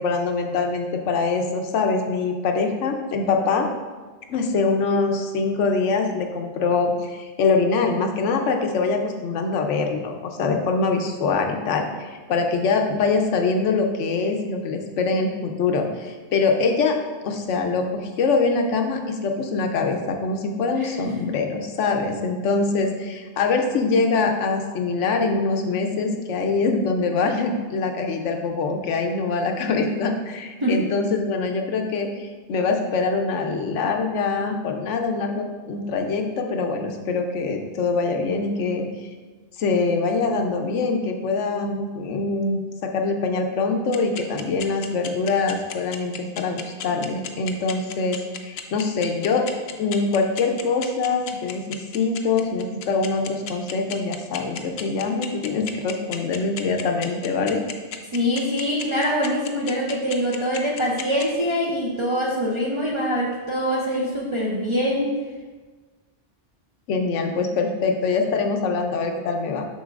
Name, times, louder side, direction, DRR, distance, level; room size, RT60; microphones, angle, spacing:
voice 1, 0.0-3.7 4.3-17.0 17.2-39.1 39.6-49.4 49.8-57.6 66.9-69.7, left 4 dB, 85° left, 4 dB, 1.0 m, -24 dB
sound 1, 43.9-61.2, left 9 dB, 65° left, 0.7 m, -33 dB
voice 2, 58.1-65.2, equal, 30° right, -5 dB, 0.6 m, -24 dB
7.1 x 5.7 x 2.4 m, 1.3 s
omnidirectional pair, 1.2 m